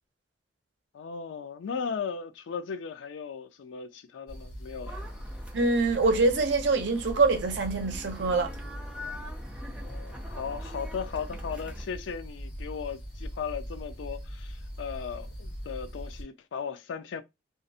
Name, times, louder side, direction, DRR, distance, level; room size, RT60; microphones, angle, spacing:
voice 1, 0.9-5.0 9.8-17.2, left 6 dB, 85° left, 0.3 m, -37 dB
sound 1, 4.3-16.2, equal, 55° left, 0.8 m, -41 dB
sound 2, 4.9-11.8, left 1 dB, 5° right, 0.5 m, -45 dB
voice 2, 5.5-8.5, right 3 dB, 75° right, 0.6 m, -24 dB
2.4 x 2.0 x 2.6 m
head